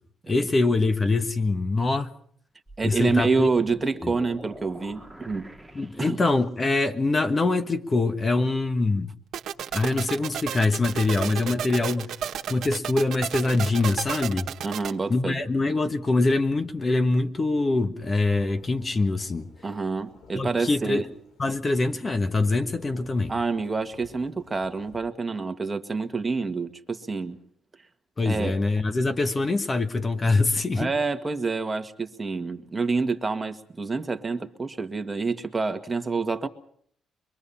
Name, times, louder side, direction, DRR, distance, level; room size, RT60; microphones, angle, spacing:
voice 1, 0.3-2.1 2.8-3.5 4.0-4.1 5.7-9.1 9.7-12.2 12.5-14.5 15.1-19.5 20.3-21.0 21.4-23.3 28.2-30.9, left 3 dB, 30° left, 1.4 m, -24 dB
sound 1, 2.7-6.6, right 1 dB, 5° right, 2.0 m, -45 dB
voice 2, 2.8-5.5 6.0-6.2 14.6-15.4 19.6-21.0 23.3-27.4 28.3-28.6 30.8-36.5, right 4 dB, 25° right, 1.7 m, -27 dB
sound 2, 9.3-14.9, right 9 dB, 70° right, 1.5 m, -32 dB
Thunderstorm / Rain, 18.2-25.0, left 4 dB, 80° left, 5.5 m, -54 dB
24.5 x 22.5 x 5.7 m
cardioid pair, 90°, 0 cm